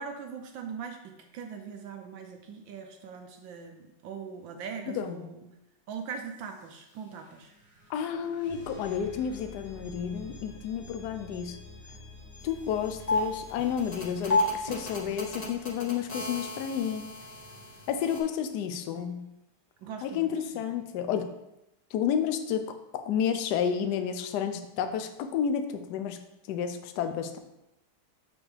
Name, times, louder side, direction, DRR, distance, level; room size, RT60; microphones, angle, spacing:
voice 1, 0.0-5.4 5.9-7.5 19.0-19.1 19.8-20.7, right 6 dB, 70° right, 4 dB, 1.2 m, -41 dB
sound 1, 6.3-17.1, left 2 dB, 5° right, 2.0 m, -49 dB
voice 2, 7.9-11.6 12.4-17.0 17.9-19.2 20.0-21.3 21.9-22.6 22.9-26.2 26.5-27.4, left 8 dB, 75° left, 7 dB, 0.9 m, -31 dB
sound 2, 12.4-12.5 12.9-18.2, left 2 dB, 35° left, 0.7 m, -32 dB
6.2 x 6.2 x 3.3 m, 0.88 s
omnidirectional pair, 2.4 m